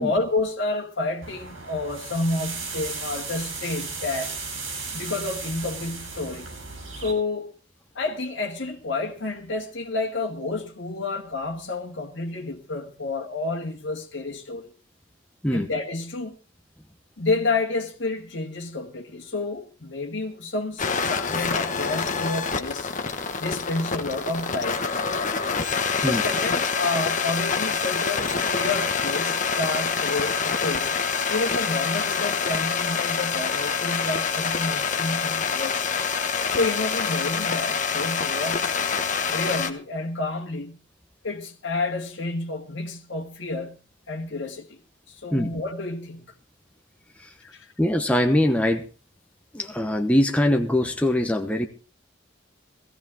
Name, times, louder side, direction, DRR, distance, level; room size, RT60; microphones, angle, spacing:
voice 1, 0.0-4.3 4.9-6.5 7.0-7.5 8.0-14.7 15.5-16.4 17.2-22.9 23.4-24.8 26.0-31.0 31.3-35.9 36.5-38.8 39.3-40.8 41.2-43.8 44.1-44.8 45.1-46.3 47.4-47.7, left 3 dB, 65° left, 1.8 m, -30 dB
sound 1, 1.2-7.1, right 4 dB, 85° right, 6.8 m, -35 dB
sound 2, 20.8-39.7, left 5 dB, 40° left, 1.2 m, -26 dB
voice 2, 47.8-48.8 49.5-51.7, left 1 dB, 5° left, 1.0 m, -22 dB
17.0 x 15.0 x 3.6 m
head